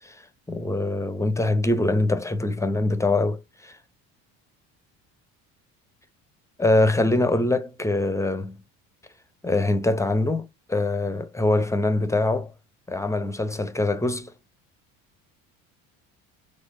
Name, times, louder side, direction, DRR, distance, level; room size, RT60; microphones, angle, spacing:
voice 1, 0.5-3.8 6.6-8.6 9.4-12.5 12.9-14.3, left 2 dB, 10° left, 0.8 m, -23 dB
4.4 x 3.1 x 2.5 m
supercardioid pair, 75°, 39 cm